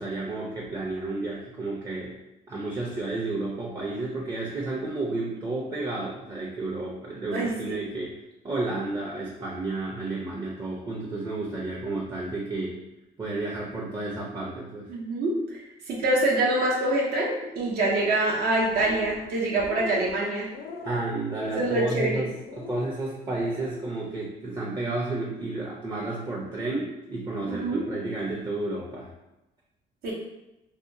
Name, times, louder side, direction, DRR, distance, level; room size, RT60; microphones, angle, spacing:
voice 1, 0.0-2.2 2.5-8.2 8.4-12.8 13.2-14.9 20.8-29.1, right 2 dB, 25° right, -4 dB, 0.5 m, -31 dB
voice 2, 7.3-7.8 14.9-15.6 15.9-20.5 21.5-22.3 27.5-27.8 30.0-30.1, right 2 dB, 70° right, -3 dB, 0.7 m, -25 dB
sound 1, 18.6-19.3 19.5-20.1 20.5-21.1 21.5-22.0 22.4-22.9 23.3-23.8, left 4 dB, 65° left, 0.4 m, -39 dB
2.7 x 2.2 x 2.6 m, 0.92 s
cardioid pair, 110°, 17 cm